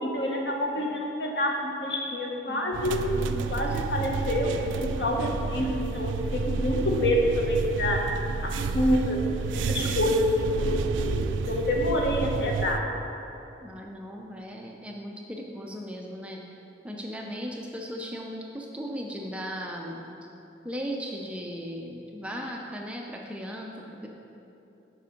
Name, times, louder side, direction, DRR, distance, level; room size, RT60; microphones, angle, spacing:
voice 1, 0.0-3.0 3.5-8.0 8.4-9.2 9.7-12.8, left 1 dB, 65° left, 0 dB, 0.9 m, -27 dB
sound 1, 2.7-12.8, right 4 dB, 85° right, 0.3 m, -30 dB
voice 2, 3.1-3.6 13.6-16.4 16.8-20.0 20.6-24.1, equal, 5° right, -1 dB, 0.4 m, -37 dB
6.9 x 5.1 x 5.1 m, 2.9 s
head